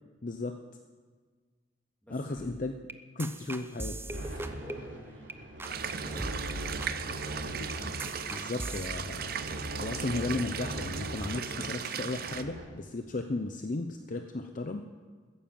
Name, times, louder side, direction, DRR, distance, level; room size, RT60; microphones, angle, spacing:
voice 1, 0.2-0.5 2.1-2.7 3.1-4.0 7.6-7.7 8.3-9.4 9.8-14.9, left 2 dB, 45° left, 5 dB, 0.7 m, -35 dB
voice 2, 2.0-2.5 4.2-6.4 7.0-7.6, equal, 5° left, -3 dB, 3.2 m, -50 dB
sound 1, 2.4-5.3 5.6-5.9 6.2-8.9, right 2 dB, 10° right, 0.5 m, -41 dB
sound 2, 4.1-12.6, right 1 dB, 75° right, 3.2 m, -41 dB
sound 3, 5.6-12.4, right 7 dB, 50° right, 0.7 m, -38 dB
14.0 x 10.0 x 7.6 m, 1.5 s
head